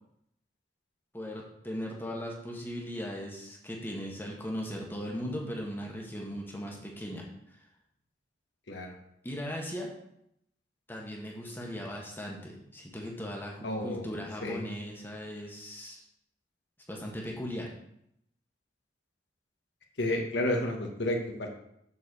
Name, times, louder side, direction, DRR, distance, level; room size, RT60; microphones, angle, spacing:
voice 1, 1.1-7.2 9.2-9.9 10.9-16.0 16.9-17.7, equal, 10° left, -1 dB, 1.6 m, -38 dB
voice 2, 13.6-14.1 14.4-14.6 20.0-21.5, left 1 dB, 85° left, 2 dB, 1.4 m, -31 dB
7.3 x 4.5 x 6.9 m, 0.75 s
head